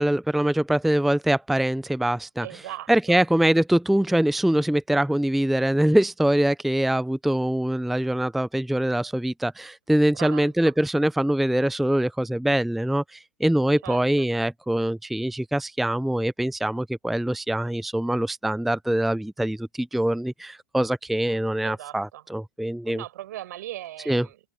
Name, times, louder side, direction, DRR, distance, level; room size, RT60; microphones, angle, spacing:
voice 1, 0.0-2.5 2.9-23.0 24.1-24.3, right 1 dB, ahead, 0.4 m, -23 dB
voice 2, 2.4-3.2 10.1-10.7 13.8-14.3 21.2-21.4 21.6-22.2 22.8-24.4, right 14 dB, 65° right, 6.2 m, -39 dB
open air
hypercardioid pair, 105°, 10 cm